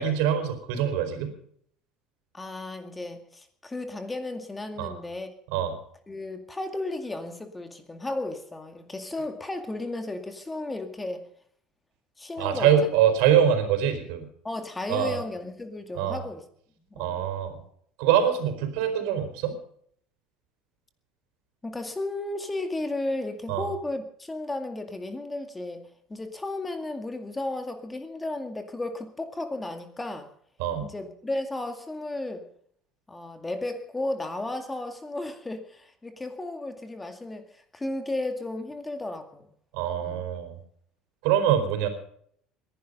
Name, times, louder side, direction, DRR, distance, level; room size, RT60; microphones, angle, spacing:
voice 1, 0.0-1.3 4.8-4.9 5.5-5.7 12.4-14.3 14.9-15.2 15.9-16.2 17.0-17.6 18.0-19.5 23.5-23.7 30.6-30.9 39.7-40.6 41.2-41.9, right 9 dB, 80° right, 7 dB, 4.4 m, -24 dB
voice 2, 2.3-5.3 6.1-11.3 12.2-12.7 14.4-16.4 16.9-17.3 21.6-25.8 26.1-30.3 30.8-32.5 33.1-39.5 40.0-40.2, left 2 dB, 10° left, 7 dB, 2.1 m, -34 dB
21.5 x 11.0 x 5.4 m, 0.63 s
cardioid pair, 130°, 0 cm